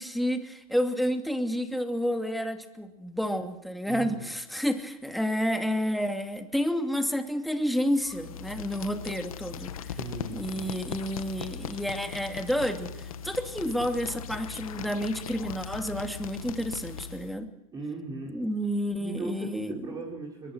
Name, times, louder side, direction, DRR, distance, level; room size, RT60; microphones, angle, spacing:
voice 1, 0.0-9.7 10.3-17.5 18.3-19.8, equal, ahead, 5 dB, 2.6 m, -30 dB
voice 2, 3.9-4.3 10.0-10.7 17.7-18.4 19.0-20.5, right 3 dB, 20° right, -2 dB, 6.3 m, -38 dB
sound 1, 8.0-17.4, left 8 dB, 70° left, 2.0 m, -39 dB
23.0 x 22.5 x 6.3 m, 0.92 s
hypercardioid pair, 115°, 18 cm